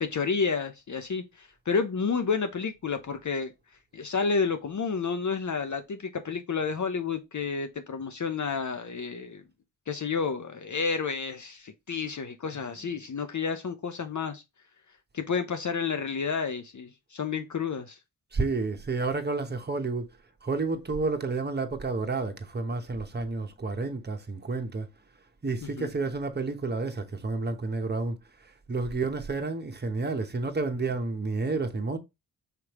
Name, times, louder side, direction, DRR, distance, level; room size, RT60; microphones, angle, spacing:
voice 1, 0.0-3.5 3.9-9.4 9.9-14.4 15.1-18.0 25.8-25.9, left 5 dB, 40° left, 0.7 m, -30 dB
voice 2, 18.3-20.1 20.4-24.9 25.4-32.0, right 3 dB, 20° right, 1.0 m, -30 dB
5.0 x 3.2 x 3.0 m
supercardioid pair, 40°, 46 cm